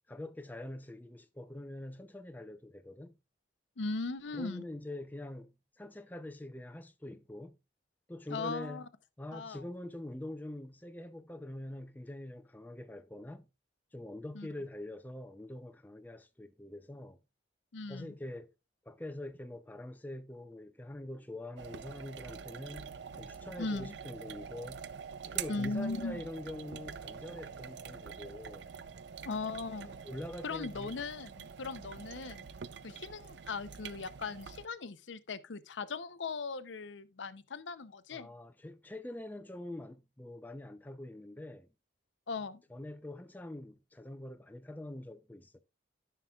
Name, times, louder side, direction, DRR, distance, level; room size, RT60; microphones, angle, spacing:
voice 1, 0.1-3.1 4.3-7.6 8.1-8.8 9.2-13.5 13.9-17.2 17.9-18.5 18.8-24.8 25.3-28.7 29.8-31.0 38.1-41.7 42.7-45.6, left 1 dB, 10° left, 0.5 m, -44 dB
voice 2, 3.8-4.6 8.3-8.9 9.3-9.6 14.3-14.5 17.7-18.1 23.6-23.9 25.5-26.2 29.3-30.0 30.4-32.5 32.8-38.3 42.3-42.6, left 3 dB, 90° left, 0.7 m, -38 dB
sound 1, 21.6-34.7, right 7 dB, 75° right, 0.5 m, -45 dB
13.0 x 5.7 x 2.3 m
head